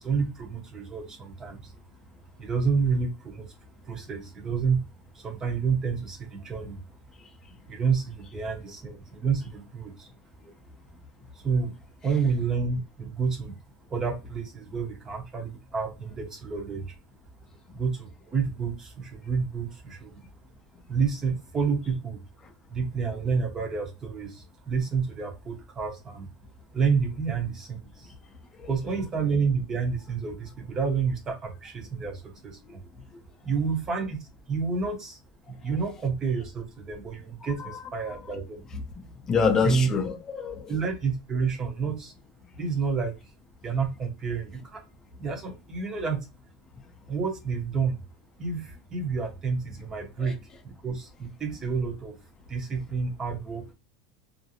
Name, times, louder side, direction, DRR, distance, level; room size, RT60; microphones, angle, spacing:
voice 1, 0.0-1.7 2.4-3.5 3.8-4.8 5.1-6.8 7.7-10.1 11.3-11.7 12.0-13.5 13.9-16.9 17.7-20.2 20.9-22.2 22.7-26.3 26.7-28.1 28.7-32.8 33.4-35.2 35.5-38.6 39.6-39.9 40.7-42.1 42.5-43.1 43.6-44.8 45.2-46.2 47.1-48.0 48.4-50.4 50.6-52.2 52.5-53.7, right 5 dB, 20° right, 0.8 m, -29 dB
voice 2, 39.2-40.8 50.2-50.3, left 6 dB, 20° left, 0.5 m, -26 dB
2.5 x 2.0 x 2.8 m
supercardioid pair, 150°, 3 cm